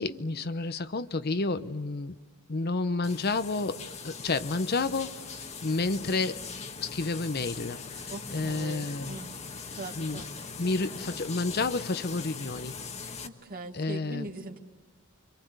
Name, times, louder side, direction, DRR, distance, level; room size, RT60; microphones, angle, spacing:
voice 1, 0.0-2.2 2.5-6.4 6.8-9.2 10.0-10.2 10.6-12.8 13.7-14.3, left 3 dB, 50° left, 12 dB, 0.8 m, -30 dB
sound 1, 3.0-13.3, left 5 dB, 35° left, 1.4 m, -41 dB
voice 2, 8.1-9.3 9.7-10.3 13.2-14.6, right 2 dB, 45° right, 3 dB, 2.2 m, -41 dB
30.0 x 25.0 x 8.0 m, 1.2 s
head